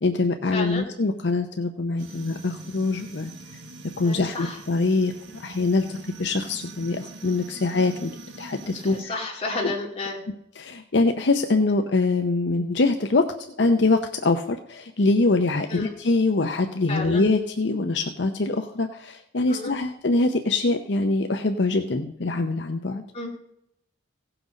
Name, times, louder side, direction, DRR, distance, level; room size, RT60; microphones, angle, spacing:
voice 1, 0.0-3.3 4.0-5.1 5.4-8.1 8.4-9.1 9.6-9.7 10.6-23.0, left 3 dB, 65° left, 5 dB, 0.7 m, -24 dB
voice 2, 0.5-0.8 4.0-4.6 8.8-10.2 15.7-15.9 16.9-17.2 19.5-19.7 23.1-23.3, left 2 dB, 30° left, -2 dB, 2.3 m, -31 dB
sound 1, 2.0-9.0, right 2 dB, 75° right, 1.3 m, -43 dB
16.5 x 6.0 x 5.1 m, 0.78 s
head